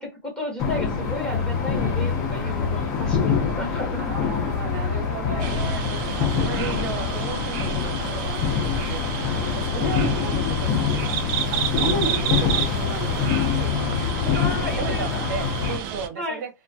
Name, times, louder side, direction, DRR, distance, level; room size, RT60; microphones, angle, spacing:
voice 1, 0.0-4.3 14.2-15.3 16.2-16.4, left 1 dB, 10° left, 1.0 m, -33 dB
sound 1, 0.6-15.8, left 6 dB, 35° left, 0.8 m, -25 dB
voice 2, 4.0-16.5, right 5 dB, 55° right, 1.0 m, -34 dB
sound 2, 5.4-16.1, right 8 dB, 40° right, 0.4 m, -31 dB
2.2 x 2.1 x 2.6 m
hypercardioid pair, 125°, 11 cm